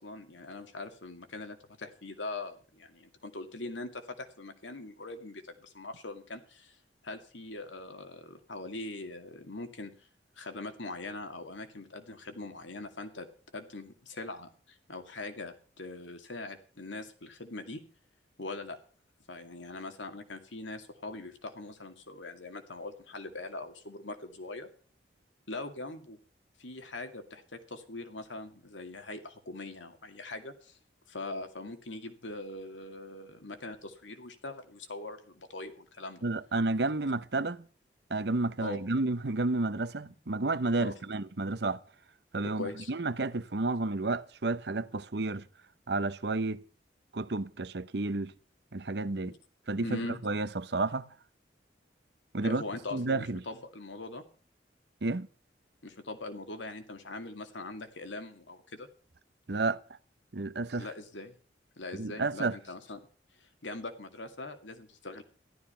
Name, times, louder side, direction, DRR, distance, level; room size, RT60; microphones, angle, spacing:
voice 1, 0.0-6.8 7.0-9.9 10.4-13.3 13.5-17.8 18.4-18.8 19.3-24.7 25.5-26.2 26.6-30.8 31.1-36.2 38.6-38.8 40.8-40.9 42.6-42.9 49.2-49.4 49.8-50.2 52.4-54.2 55.8-58.9 60.7-61.3 61.8-63.0 63.4-65.2, left 2 dB, 90° left, 2.3 m, -42 dB
voice 2, 36.2-37.7 38.1-41.8 42.3-45.4 45.9-46.6 47.1-48.3 48.7-49.3 49.7-51.1 52.3-52.6 52.9-53.4 55.0-55.3 59.5-59.8 60.3-60.9 62.0-62.5, right 2 dB, 65° right, 0.8 m, -31 dB
14.0 x 12.5 x 5.6 m
head